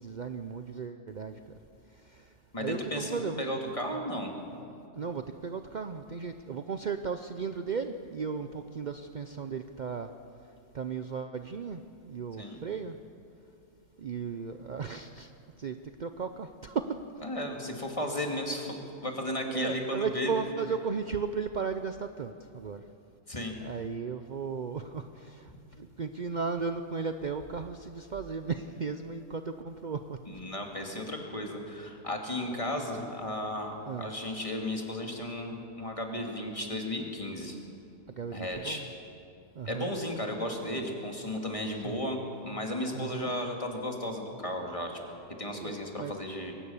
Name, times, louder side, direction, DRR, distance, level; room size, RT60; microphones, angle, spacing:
voice 1, 0.0-1.4 2.1-2.3 2.6-3.4 4.9-10.1 10.7-11.8 12.1-13.0 14.0-15.3 15.6-17.0 19.5-22.8 23.6-25.5 25.8-30.2 32.9-33.0 33.9-34.1 38.2-38.9 39.6-39.9 41.8-42.0 42.9-43.3 45.5-46.1, right 5 dB, 65° right, 8 dB, 0.4 m, -35 dB
voice 2, 2.5-4.6 12.4-12.6 17.2-20.3 23.3-23.5 30.3-37.6 38.3-38.8 39.7-45.0 45.4-46.5, left 1 dB, 20° left, 2 dB, 2.4 m, -34 dB
22.0 x 18.5 x 7.1 m, 2.5 s
omnidirectional pair, 1.7 m